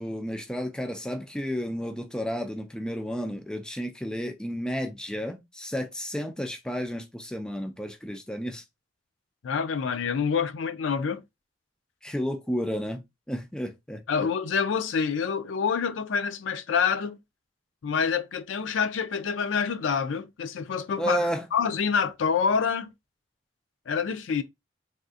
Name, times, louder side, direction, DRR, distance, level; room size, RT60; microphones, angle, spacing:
voice 1, 0.0-8.6 12.0-13.0 13.3-14.0 21.0-21.5, equal, 5° left, 0.4 m, -32 dB
voice 2, 9.4-11.2 14.1-17.2 17.8-21.2 21.5-22.9 23.9-24.4, left 6 dB, 75° left, 0.4 m, -27 dB
3.5 x 2.5 x 2.4 m
head